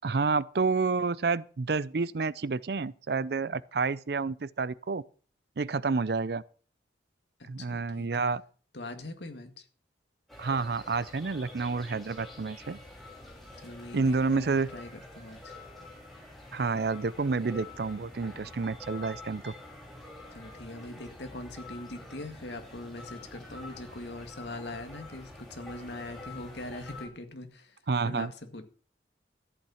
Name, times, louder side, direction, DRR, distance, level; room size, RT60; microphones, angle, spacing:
voice 1, 0.0-5.0 5.6-6.4 7.5-8.4 10.4-12.8 13.9-14.7 16.5-19.5 27.9-28.3, right 4 dB, 60° right, 0.5 m, -29 dB
voice 2, 7.4-8.4 8.7-9.6 13.6-15.5 20.3-27.7 28.0-28.6, left 2 dB, 70° left, 2.1 m, -42 dB
sound 1, 10.3-27.1, left 2 dB, ahead, 3.2 m, -47 dB
13.5 x 8.7 x 5.7 m
head